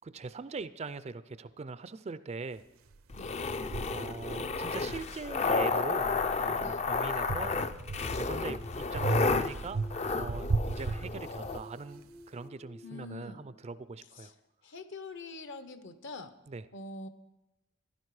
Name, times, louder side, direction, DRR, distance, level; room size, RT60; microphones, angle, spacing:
voice 1, 0.0-2.6 3.9-7.6 8.1-9.8 10.1-14.3 16.5-16.6, right 4 dB, 30° right, 14 dB, 0.4 m, -41 dB
sound 1, 2.9-3.0 3.7-5.6 6.0-8.4 9.0-11.7, right 3 dB, 80° right, 0.7 m, -36 dB
sound 2, 3.1-11.6, left 4 dB, 30° left, 0.4 m, -32 dB
sound 3, 6.9-14.2, equal, 80° left, 4.8 m, -53 dB
voice 2, 12.8-13.5 14.1-14.3 14.6-16.3 16.7-17.1, left 3 dB, 60° left, 10 dB, 0.9 m, -44 dB
15.5 x 11.5 x 4.8 m, 1.0 s
head